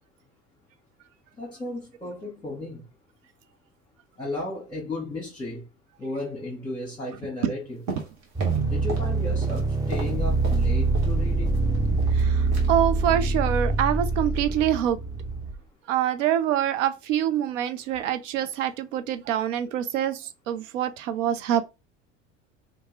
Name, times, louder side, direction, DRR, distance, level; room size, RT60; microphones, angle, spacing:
voice 1, 1.4-2.8 4.2-5.6 6.0-7.8 8.7-11.5, left 2 dB, 15° left, 1.2 m, -34 dB
sound 1, 7.9-9.1 9.4-11.2 11.5-12.2 12.5-12.7 13.0-13.2 13.5-13.8 14.1-14.2, right 2 dB, 50° right, 1.2 m, -39 dB
sound 2, 8.3-15.6, right 3 dB, 10° right, 0.5 m, -24 dB
voice 2, 12.2-15.0 15.9-21.6, right 10 dB, 75° right, 0.6 m, -25 dB
2.7 x 2.1 x 3.1 m
hypercardioid pair, 70°, 38 cm